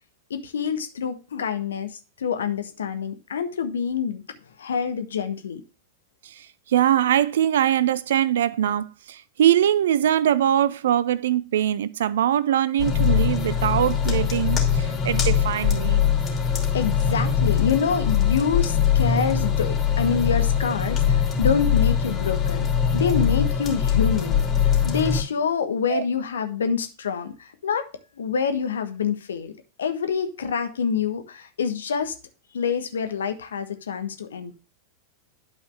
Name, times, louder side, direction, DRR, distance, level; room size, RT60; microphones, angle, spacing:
voice 1, 0.3-4.2 4.6-5.6 16.7-22.7 22.9-27.9 28.2-32.1 32.5-34.6, left 6 dB, 65° left, 1.2 m, -26 dB
voice 2, 6.2-16.0 25.9-26.0, right 11 dB, 60° right, 0.5 m, -22 dB
sound 1, 12.8-25.2, left 8 dB, 25° left, 2.7 m, -22 dB
12.0 x 4.9 x 3.3 m
figure-of-eight pair, 90°, 0 cm